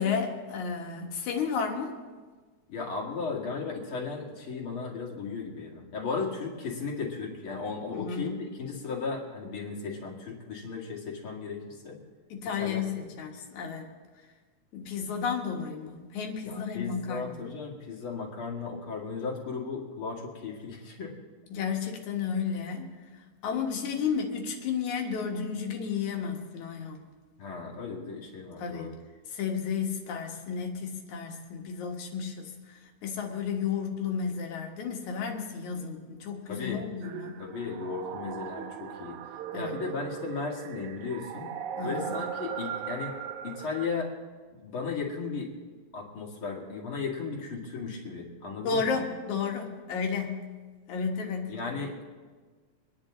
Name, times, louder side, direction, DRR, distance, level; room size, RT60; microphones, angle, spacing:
voice 1, 0.0-2.0 7.9-8.3 12.3-13.9 14.7-17.4 21.5-22.9 23.4-27.0 28.6-28.9 29.3-37.3 39.5-39.8 41.8-42.1 48.6-50.4 50.9-51.5, left 6 dB, 75° left, 2 dB, 2.8 m, -32 dB
voice 2, 2.7-12.0 12.6-12.8 16.5-21.1 27.4-29.0 36.5-36.9 37.4-39.2 39.5-41.5 41.8-43.1 43.4-44.1 44.5-45.5 45.9-49.0 51.5-52.0, left 4 dB, 45° left, -1 dB, 2.7 m, -35 dB
sound 1, 37.0-43.9, right 8 dB, 80° right, 2.1 m, -38 dB
25.5 x 10.5 x 3.8 m, 1.4 s
omnidirectional pair, 3.5 m